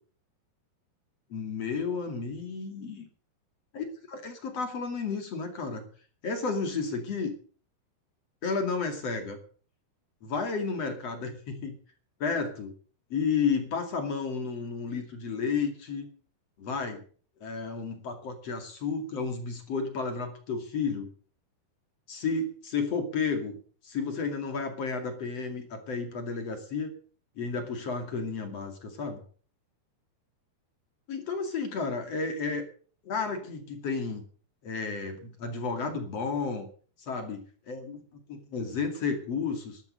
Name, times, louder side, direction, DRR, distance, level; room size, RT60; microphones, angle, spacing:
voice 1, 1.3-3.1 3.8-5.8 6.2-7.3 8.4-9.4 10.2-11.7 12.2-12.7 13.1-16.1 16.6-17.0 17.4-21.1 22.1-23.6 23.8-26.9 27.4-29.2 31.1-32.6 33.0-34.2 34.6-36.7 37.0-38.0 38.3-39.8, left 5 dB, 45° left, 5 dB, 3.1 m, -32 dB
12.0 x 12.0 x 6.7 m, 0.43 s
omnidirectional pair, 4.5 m